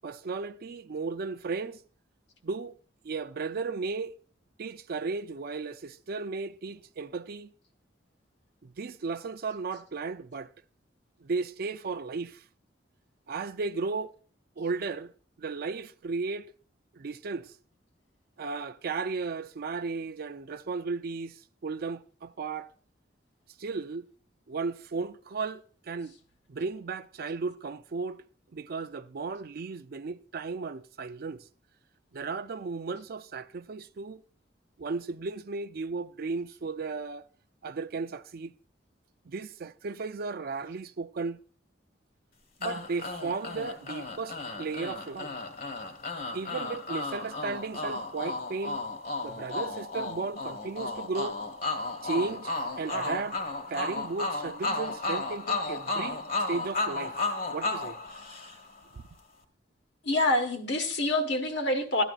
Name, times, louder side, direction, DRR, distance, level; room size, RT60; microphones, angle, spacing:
voice 1, 0.0-1.8 2.4-2.7 3.0-4.2 4.6-7.5 8.6-10.5 11.2-12.4 13.3-14.1 14.6-15.1 15.4-16.5 16.9-17.5 18.4-21.4 21.6-22.7 23.6-24.1 24.5-26.1 26.5-28.2 28.5-31.4 32.1-34.2 34.8-37.2 37.6-38.5 39.3-41.4 42.6-45.3 46.3-48.8 49.2-51.4 52.0-52.5 52.8-53.4 53.7-56.2 56.5-58.0 58.9-59.0, right 4 dB, 55° right, 0.5 m, -35 dB
sound 1, 42.6-58.8, left 2 dB, 50° left, 1.4 m, -34 dB
voice 2, 60.0-62.0, left 1 dB, 70° left, 1.4 m, -26 dB
13.5 x 10.0 x 2.4 m
head